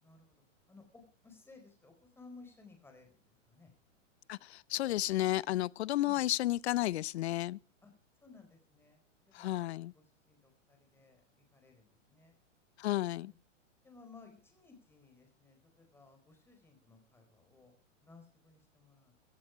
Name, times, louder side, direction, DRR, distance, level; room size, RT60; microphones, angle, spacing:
voice 1, 0.0-0.4 0.7-3.7 6.0-6.2 7.8-7.9 8.2-11.2 11.5-12.3 13.2-13.3 13.8-19.1, left 3 dB, 5° left, 4.3 m, -59 dB
voice 2, 4.3-7.6 9.3-9.9 12.8-13.3, left 15 dB, 55° left, 0.6 m, -32 dB
16.5 x 14.5 x 4.6 m
hypercardioid pair, 140°, 38 cm